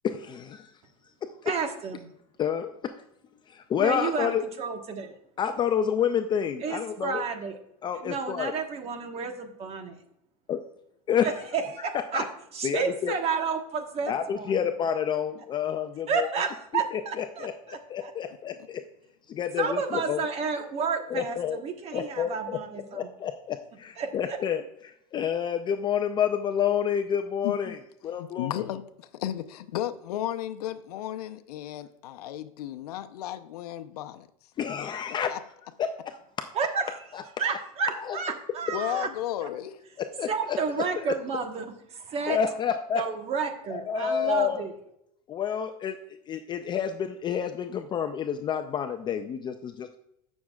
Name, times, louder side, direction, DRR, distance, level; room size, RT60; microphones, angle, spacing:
voice 1, 0.0-0.7 2.4-2.7 3.7-4.4 5.4-7.2 7.8-8.5 10.5-10.6 11.1-11.4 11.8-11.9 12.1-12.3 12.6-13.1 14.1-16.5 16.9-18.8 19.3-20.3 21.1-21.6 21.9-22.6 22.9-24.6 25.1-27.8 28.0-28.5 34.6-35.3 35.8-35.9 37.1-38.2 40.2-40.6 41.0-41.1 42.3-43.0 43.7-44.6 45.3-45.9 46.3-50.0, left 8 dB, 25° left, 7 dB, 0.4 m, -29 dB
voice 2, 1.5-2.1 3.8-5.1 6.6-7.5 8.0-9.9 11.5-12.2 12.5-14.5 16.1-18.1 19.6-23.0 24.0-24.1 36.5-37.0 37.4-39.1 40.3-41.7 42.1-42.4 43.0-44.7, right 5 dB, 30° right, 6 dB, 1.2 m, -31 dB
voice 3, 28.1-34.3 35.3-35.4 38.7-39.8, left 12 dB, 80° left, 10 dB, 0.7 m, -34 dB
15.5 x 6.3 x 2.3 m, 0.76 s
supercardioid pair, 135°, 19 cm